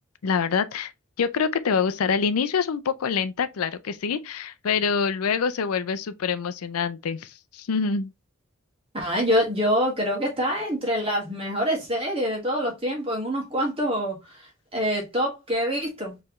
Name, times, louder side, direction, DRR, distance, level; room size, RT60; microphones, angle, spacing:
voice 1, 0.2-0.9 1.2-8.1, left 6 dB, 90° left, 0.5 m, -25 dB
voice 2, 8.9-16.1, equal, 25° right, 1.6 m, -26 dB
4.5 x 3.3 x 3.0 m
head